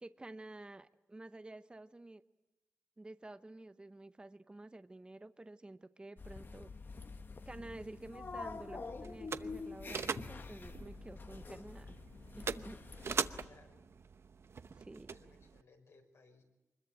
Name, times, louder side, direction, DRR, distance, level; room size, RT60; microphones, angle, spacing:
voice 1, 0.0-2.2 3.0-6.7 7.5-12.0 12.4-13.0 14.8-15.1, right 2 dB, 20° right, 11 dB, 0.8 m, -51 dB
sound 1, 6.2-13.5, left 4 dB, 45° left, 1.1 m, -47 dB
sound 2, 7.6-15.6, right 5 dB, 60° right, 0.8 m, -43 dB
voice 2, 13.4-13.8 15.1-16.4, left 3 dB, 70° left, 3 dB, 5.5 m, -63 dB
24.5 x 21.0 x 9.0 m, 1.0 s
wide cardioid pair, 95°, 5 cm